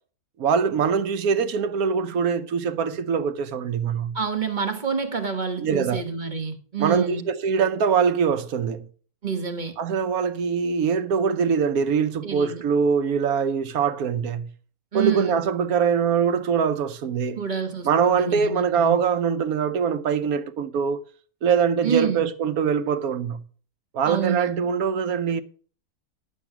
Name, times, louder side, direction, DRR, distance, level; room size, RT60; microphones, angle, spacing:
voice 1, 0.4-4.2 5.6-6.0 6.8-8.9 9.8-14.5 14.9-17.4 17.8-21.0 21.4-23.4 23.9-25.4, right 6 dB, 90° right, 1.3 m, -23 dB
voice 2, 4.1-7.3 9.2-9.7 12.2-12.6 14.9-15.4 17.3-19.0 21.8-22.2 24.0-24.5, right 6 dB, 35° right, 1.4 m, -28 dB
11.0 x 7.3 x 5.8 m
omnidirectional pair, 1.5 m